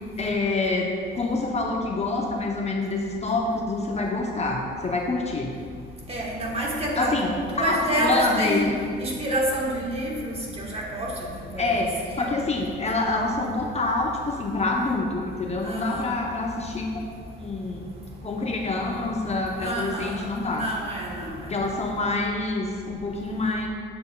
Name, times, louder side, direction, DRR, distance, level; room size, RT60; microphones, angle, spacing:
voice 1, 0.2-5.6 7.0-7.3 7.6-8.7 11.6-11.9 12.2-17.9 18.2-20.6 21.5-23.7, left 3 dB, 35° left, 0 dB, 0.7 m, -26 dB
voice 2, 6.1-8.7 9.0-11.1 11.5-12.3 15.6-16.1 19.6-20.3 20.5-21.4, right 1 dB, 30° right, -3 dB, 1.4 m, -28 dB
7.8 x 6.7 x 2.2 m, 2.2 s
cardioid pair, 90°, 20 cm